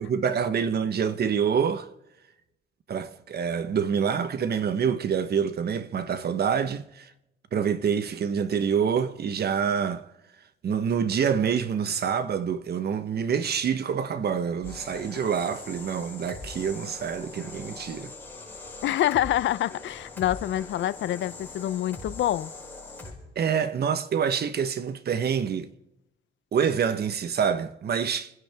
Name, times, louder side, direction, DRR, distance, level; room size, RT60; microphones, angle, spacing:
voice 1, 0.0-1.9 2.9-7.1 7.5-10.1 10.6-18.1 23.4-25.7 26.5-28.3, right 7 dB, 55° right, 1.1 m, -26 dB
sound 1, 14.6-23.1, left 3 dB, 10° left, 5.4 m, -42 dB
voice 2, 18.8-22.5, left 12 dB, 70° left, 0.6 m, -26 dB
29.5 x 10.5 x 3.5 m
cardioid pair, 90°, 20 cm